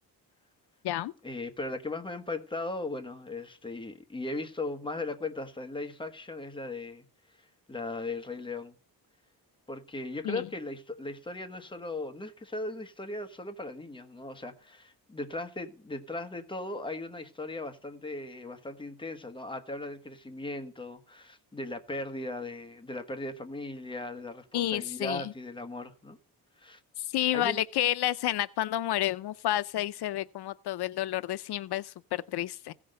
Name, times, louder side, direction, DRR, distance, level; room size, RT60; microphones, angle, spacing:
voice 1, 1.2-7.0 7.7-8.7 9.7-26.2 26.6-26.8 27.3-27.6, left 2 dB, 10° left, 1.2 m, -38 dB
voice 2, 24.5-25.3 27.0-32.7, left 13 dB, 75° left, 0.5 m, -30 dB
16.0 x 6.1 x 6.5 m
wide cardioid pair, 155°, 39 cm